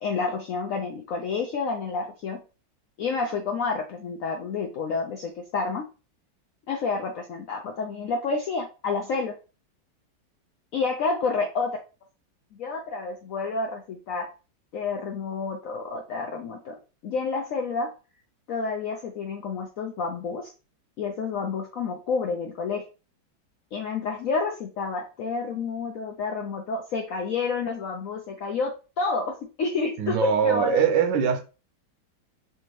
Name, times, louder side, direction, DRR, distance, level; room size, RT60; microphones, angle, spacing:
voice 1, 0.0-2.4 3.0-5.8 6.7-9.3 10.7-11.8 12.5-14.3 14.7-16.7 17.0-17.9 18.5-20.5 21.0-22.8 23.7-28.7 29.0-30.8, left 4 dB, 75° left, 0.7 m, -29 dB
voice 2, 30.0-31.4, right 7 dB, 75° right, 1.2 m, -22 dB
3.4 x 2.8 x 3.0 m
omnidirectional pair, 2.0 m